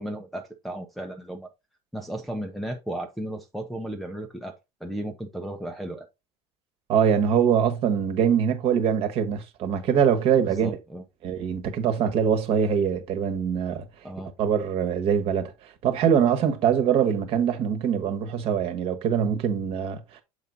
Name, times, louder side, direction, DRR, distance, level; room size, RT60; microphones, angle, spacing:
voice 1, 0.0-1.5 1.9-6.1 10.4-11.0 14.0-14.3, right 1 dB, ahead, 0.8 m, -35 dB
voice 2, 6.9-10.8 11.2-13.9 14.4-20.2, right 8 dB, 45° right, 1.4 m, -23 dB
7.2 x 4.9 x 3.9 m
cardioid pair, 165°, 14 cm